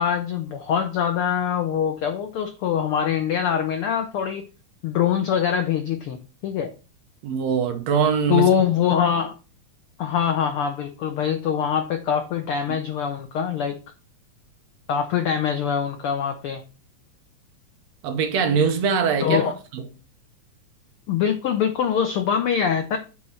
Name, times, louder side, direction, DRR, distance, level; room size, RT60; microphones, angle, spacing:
voice 1, 0.0-4.5 4.8-6.2 6.4-6.7 8.3-9.3 10.0-13.8 14.9-16.6 19.2-19.5 21.1-23.0, left 8 dB, 90° left, 1.2 m, -23 dB
voice 2, 7.2-8.5 12.7-12.8 18.0-19.8, right 6 dB, 70° right, 1.9 m, -22 dB
8.3 x 3.2 x 5.8 m
omnidirectional pair, 3.4 m